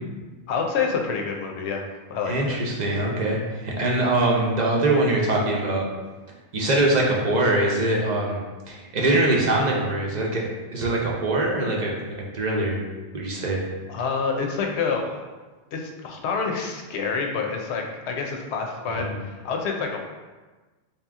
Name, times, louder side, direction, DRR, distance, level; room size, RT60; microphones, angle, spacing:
voice 1, 0.5-2.6 3.8-4.1 13.9-15.2 15.7-20.1, left 5 dB, 80° left, 2 dB, 0.9 m, -28 dB
voice 2, 2.3-5.8 6.5-8.4 8.7-12.8 13.1-13.6 18.9-19.2, right 2 dB, 50° right, -2 dB, 0.6 m, -23 dB
3.5 x 2.8 x 3.5 m, 1.3 s
omnidirectional pair, 1.1 m